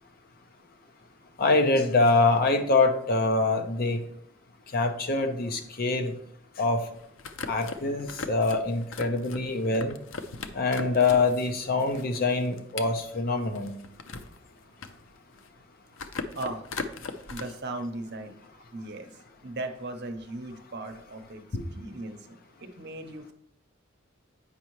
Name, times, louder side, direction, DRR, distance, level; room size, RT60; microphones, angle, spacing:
voice 1, 1.4-4.0 4.7-6.1 6.6-6.8 7.5-9.9 10.5-13.7 21.5-21.6, left 3 dB, 50° left, 6 dB, 0.8 m, -24 dB
sound 1, 6.9-11.5 11.8-14.4 14.7-15.6 15.9-17.4, left 4 dB, 85° left, 0.6 m, -39 dB
voice 2, 17.3-18.3 18.7-19.1 19.4-21.4 21.7-23.3, right 2 dB, 60° right, 6 dB, 0.8 m, -37 dB
8.5 x 5.4 x 3.1 m, 0.70 s
head